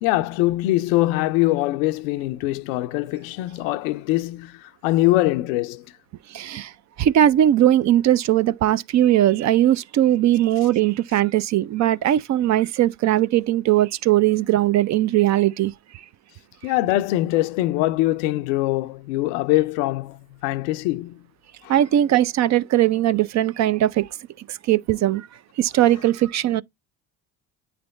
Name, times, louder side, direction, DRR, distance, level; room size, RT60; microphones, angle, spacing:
voice 1, 0.0-5.9 16.6-21.2 21.6-21.7, left 17 dB, 90° left, 0.6 m, -23 dB
voice 2, 6.3-6.7 7.0-15.7 21.7-24.1 24.5-25.3 25.6-26.6, right 12 dB, 45° right, 0.4 m, -19 dB
8.9 x 3.4 x 3.9 m
supercardioid pair, 80°, 39 cm